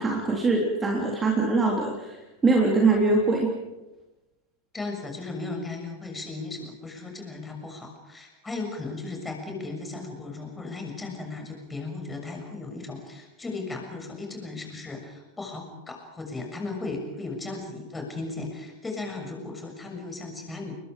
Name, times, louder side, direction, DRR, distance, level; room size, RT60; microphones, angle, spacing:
voice 1, 0.0-2.2 2.4-3.5, right 3 dB, 15° right, 0 dB, 3.5 m, -22 dB
voice 2, 4.7-20.7, left 3 dB, 10° left, 2 dB, 6.8 m, -36 dB
30.0 x 22.0 x 5.1 m, 1.1 s
figure-of-eight pair, 90°, 0 cm